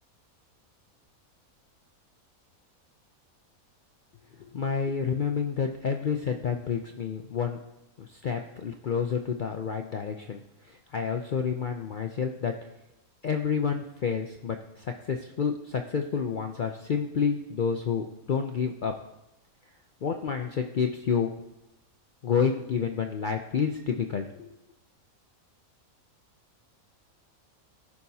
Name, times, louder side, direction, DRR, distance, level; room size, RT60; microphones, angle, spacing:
voice 1, 4.4-7.6 8.0-12.5 13.2-18.9 20.0-21.3 22.2-24.5, left 6 dB, 65° left, 4 dB, 0.5 m, -29 dB
15.5 x 5.8 x 2.8 m, 0.89 s
omnidirectional pair, 1.5 m